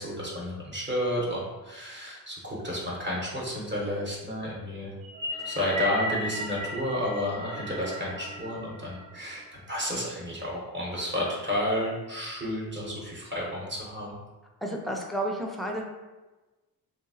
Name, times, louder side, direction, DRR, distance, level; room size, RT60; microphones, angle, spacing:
voice 1, 0.0-4.9 5.4-9.4 9.7-14.1, left 1 dB, 30° right, -5 dB, 0.8 m, -31 dB
sound 1, 5.0-9.6, equal, 60° right, 0.9 m, -36 dB
voice 2, 14.6-15.8, right 1 dB, ahead, 1 dB, 0.4 m, -31 dB
2.8 x 2.7 x 2.6 m, 1.2 s
cardioid pair, 85°, 37 cm